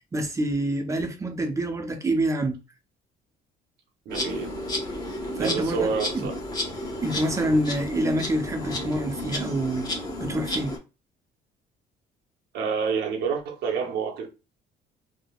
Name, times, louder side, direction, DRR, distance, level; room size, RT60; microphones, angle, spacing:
voice 1, 0.1-2.6 5.4-5.9 6.1-6.3 7.0-9.9 10.2-10.7, right 1 dB, 20° right, 0.5 m, -26 dB
Insect, 4.1-10.8, left 1 dB, 25° left, 0.8 m, -32 dB
voice 2, 4.1-4.5 5.4-6.4 12.5-14.3, right 5 dB, 75° right, 0.8 m, -28 dB
3.3 x 2.1 x 2.3 m
cardioid pair, 110°, 17 cm